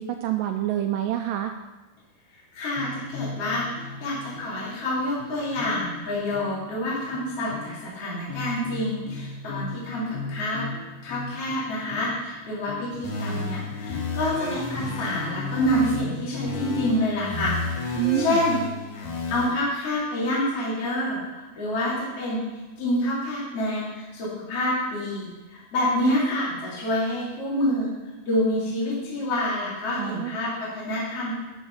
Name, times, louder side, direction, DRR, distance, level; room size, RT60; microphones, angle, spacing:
voice 1, 0.0-1.5 18.0-18.4 30.0-30.4, right 12 dB, 80° right, 6 dB, 2.0 m, -27 dB
voice 2, 2.5-10.7 11.0-18.6 18.9-22.4 22.8-27.9 28.3-31.3, left 1 dB, 40° left, -7 dB, 3.8 m, -27 dB
sound 1, 2.8-7.9 8.3-17.0, left 4 dB, 85° left, 2.6 m, -38 dB
sound 2, 13.0-16.0 16.5-19.5, left 3 dB, 55° left, 2.6 m, -32 dB
12.5 x 6.1 x 5.5 m, 1.2 s
omnidirectional pair, 4.3 m